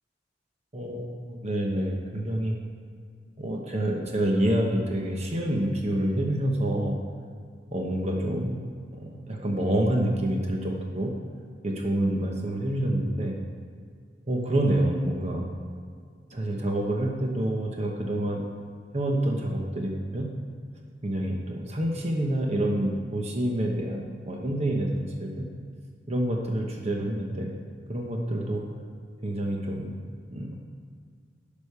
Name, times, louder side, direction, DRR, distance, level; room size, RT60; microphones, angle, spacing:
voice 1, 0.7-2.6 3.4-7.0 7.7-8.6 8.9-11.1 11.6-13.3 14.3-15.5 16.3-18.4 18.9-20.3 21.0-25.5 26.1-27.5 27.9-28.6 29.2-29.9 30.3-30.6, right 1 dB, 35° right, 0 dB, 1.0 m, -27 dB
11.0 x 5.3 x 6.7 m, 2.1 s
head